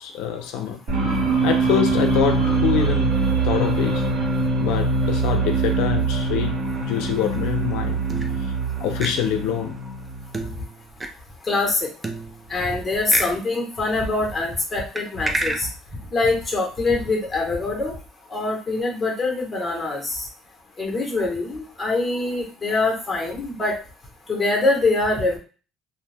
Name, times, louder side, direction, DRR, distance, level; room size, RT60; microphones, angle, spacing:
voice 1, 0.0-3.2 3.4-4.1 4.6-8.0 8.4-8.5 8.8-9.8, left 9 dB, 80° left, 0.4 m, -25 dB
sound 1, 0.9-10.5, right 3 dB, 50° right, 1.1 m, -23 dB
sound 2, 6.6-7.5 8.1-8.7 9.0-9.1 10.3-11.1 12.0-12.7 13.1-13.3 14.9-15.6, right 2 dB, 10° right, 0.3 m, -30 dB
voice 2, 11.5-11.9 12.5-15.7 16.1-17.9 18.3-20.2 20.8-23.7 24.3-25.4, left 2 dB, 10° left, 0.9 m, -24 dB
2.6 x 2.2 x 3.3 m
cardioid pair, 180°, 0 cm